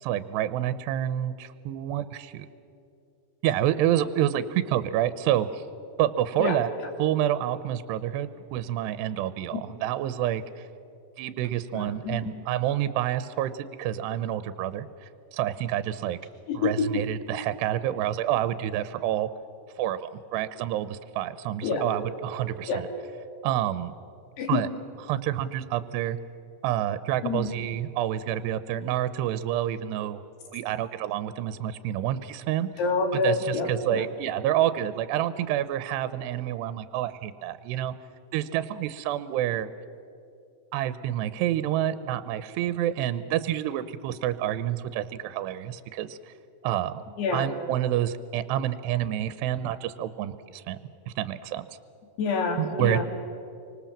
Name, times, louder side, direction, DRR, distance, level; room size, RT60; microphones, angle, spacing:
voice 1, 0.0-2.5 3.4-5.6 6.0-6.7 7.0-10.7 11.2-13.5 13.8-16.2 16.5-19.3 19.8-22.9 23.4-23.9 24.5-24.7 25.1-26.2 26.6-30.2 30.5-32.7 33.1-37.9 38.3-39.7 40.7-46.2 46.6-47.0 47.3-50.8 51.1-51.7 52.6-53.0, right 12 dB, 80° right, 13 dB, 2.8 m, -28 dB
voice 2, 11.7-12.3 16.5-17.0 21.6-21.8 22.7-22.8 24.4-24.7 27.2-27.5 32.8-34.1 47.2-47.5 52.2-53.0, left 4 dB, 70° left, 3 dB, 4.4 m, -27 dB
29.5 x 25.0 x 7.3 m, 2.6 s
omnidirectional pair, 5.0 m